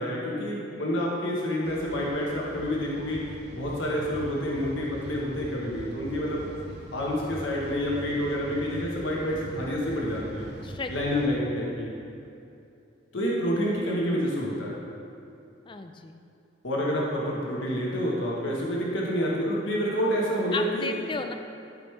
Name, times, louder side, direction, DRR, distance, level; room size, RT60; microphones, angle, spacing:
voice 1, 0.0-3.2 3.5-6.5 6.9-10.5 10.9-11.9 13.1-14.8 16.6-21.0, equal, 75° left, -4 dB, 1.2 m, -28 dB
sound 1, 1.6-11.3, right 1 dB, 55° right, 0.8 m, -43 dB
voice 2, 10.6-11.2 15.7-16.2 20.5-21.3, left 4 dB, 25° left, 6 dB, 0.4 m, -34 dB
12.0 x 5.3 x 3.3 m, 2.7 s
head